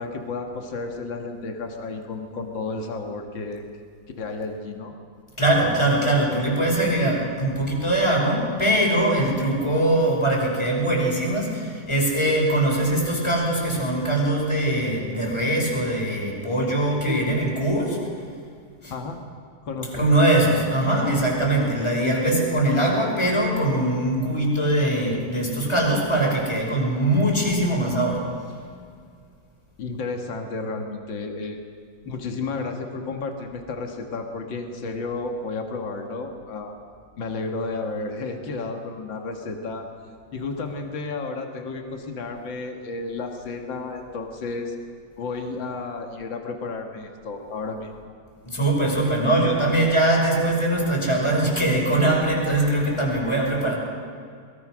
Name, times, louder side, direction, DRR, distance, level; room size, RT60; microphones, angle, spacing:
voice 1, 0.0-3.6 4.2-4.9 17.1-17.2 18.9-19.2 19.6-20.1 29.8-31.6 32.0-36.8 37.2-39.9 40.3-44.8 45.2-47.9, left 3 dB, 75° left, 3 dB, 2.6 m, -32 dB
voice 2, 5.4-18.0 18.8-18.9 20.0-28.3 48.4-53.7, right 1 dB, 15° left, -2 dB, 5.7 m, -22 dB
23.0 x 22.0 x 6.3 m, 2.2 s
omnidirectional pair, 2.1 m